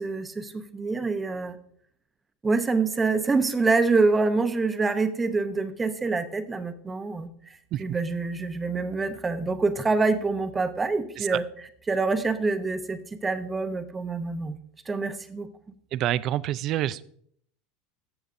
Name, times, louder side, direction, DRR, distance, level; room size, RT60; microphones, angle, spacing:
voice 1, 0.0-1.6 2.4-11.4 11.9-14.6 14.9-15.5, right 3 dB, 15° right, 10 dB, 0.7 m, -26 dB
voice 2, 15.9-17.0, right 13 dB, 45° right, 17 dB, 0.4 m, -27 dB
14.5 x 6.9 x 2.6 m, 0.64 s
supercardioid pair, 135°, 0 cm